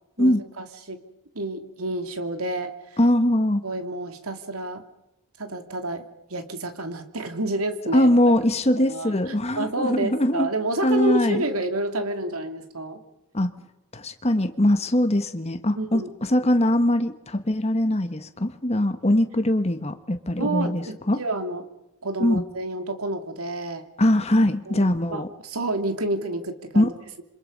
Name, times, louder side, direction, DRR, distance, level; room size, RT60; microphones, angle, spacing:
voice 1, 0.2-1.0 1.3-2.7 3.6-4.8 5.4-6.0 6.3-8.3 8.9-13.0 15.8-16.1 20.4-21.7 22.0-23.8 24.7-27.2, right 1 dB, 85° right, 7 dB, 2.7 m, -29 dB
voice 2, 3.0-3.6 7.9-10.5 10.8-11.4 13.3-13.5 13.9-16.0 16.3-21.2 22.2-22.4 24.0-25.3 26.8-26.9, left 1 dB, 30° left, 8 dB, 1.6 m, -21 dB
27.5 x 25.5 x 5.5 m, 0.93 s
head